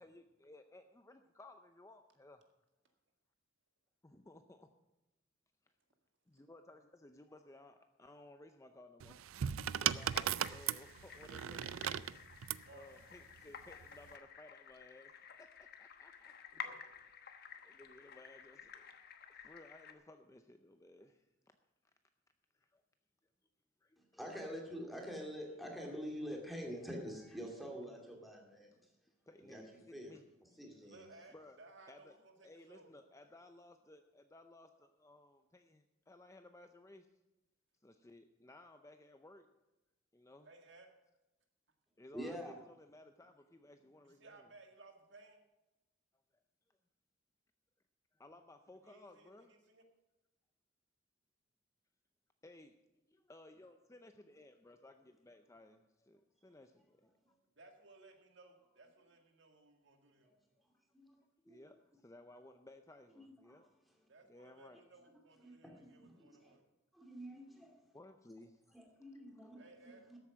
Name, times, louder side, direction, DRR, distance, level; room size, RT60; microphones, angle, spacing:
voice 1, 0.0-2.4 4.0-4.7 6.3-9.2 9.8-12.1 12.7-16.6 17.6-18.9 19.3-21.3 22.5-22.8 23.8-24.0 29.3-30.2 30.5-30.8 31.3-31.6 31.9-32.2 32.4-37.1 37.8-39.5 40.1-40.5 42.0-44.5 48.1-49.5 52.4-57.4 61.5-63.7 64.3-64.8 67.9-68.8 69.4-69.5, left 2 dB, 15° left, 7 dB, 0.5 m, -59 dB
sound 1, 9.0-12.7 13.7-14.1, right 10 dB, 85° right, 0.4 m, -37 dB
sound 2, 9.9-19.9, left 7 dB, 50° left, 1.1 m, -53 dB
voice 2, 24.0-28.7 29.4-29.6 29.9-30.1 30.6-31.0 42.1-42.5 60.9-61.2 61.4-61.7 63.2-63.6 65.4-66.6 66.9-67.8 68.7-70.2, equal, ahead, 0 dB, 2.4 m, -46 dB
voice 3, 30.8-32.9 40.4-40.9 44.0-45.4 48.9-49.8 57.6-60.3 64.1-66.6 69.6-70.0, right 3 dB, 60° right, 4 dB, 1.9 m, -60 dB
13.5 x 8.2 x 6.1 m, 0.99 s
head